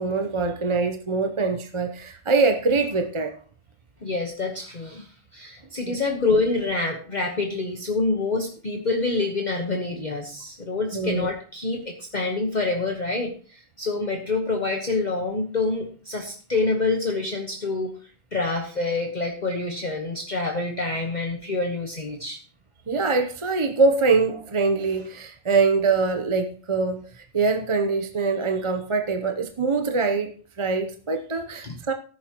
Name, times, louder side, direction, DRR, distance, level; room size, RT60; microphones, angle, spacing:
voice 1, 0.0-3.4 5.9-6.0 10.9-11.3 22.9-27.1 27.3-30.3 30.6-31.9, right 4 dB, 30° right, 5 dB, 0.7 m, -23 dB
voice 2, 4.0-17.9 18.3-22.4 31.6-31.8, left 3 dB, 35° left, 2 dB, 1.2 m, -27 dB
14.0 x 10.5 x 3.0 m, 0.40 s
omnidirectional pair, 1.3 m